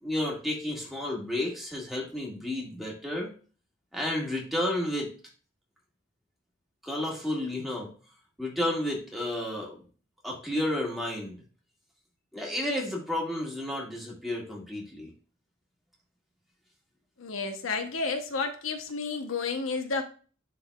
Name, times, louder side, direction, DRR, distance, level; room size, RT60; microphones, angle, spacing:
voice 1, 0.0-3.3 3.9-5.1 6.8-7.9 8.4-9.8 10.2-11.4 12.3-15.1, left 1 dB, ahead, -2 dB, 1.7 m, -31 dB
voice 2, 17.2-20.0, left 4 dB, 75° left, 5 dB, 0.8 m, -31 dB
10.5 x 3.9 x 2.3 m, 0.39 s
head